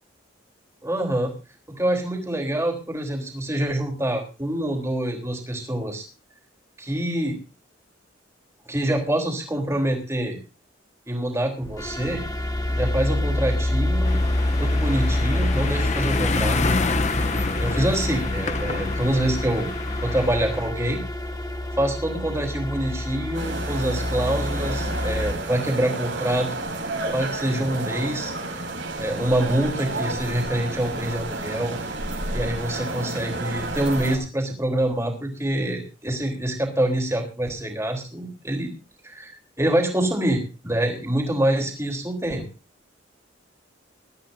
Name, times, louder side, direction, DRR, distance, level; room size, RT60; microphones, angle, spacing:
voice 1, 0.8-1.3 1.7-6.1 6.8-7.4 8.7-10.4 11.1-12.2 12.8-14.2 14.6-16.6 17.6-19.7 20.0-21.0 21.8-26.5 27.1-28.3 29.0-31.8 32.3-38.7 39.0-42.5, right 1 dB, 15° right, 2 dB, 3.6 m, -25 dB
sound 1, 11.6-25.3, left 1 dB, 20° left, 1.8 m, -27 dB
sound 2, 14.0-20.7, left 3 dB, 35° left, 0.8 m, -28 dB
sound 3, 23.3-34.2, right 2 dB, 70° right, 6.0 m, -31 dB
22.0 x 13.0 x 2.7 m, 0.32 s
head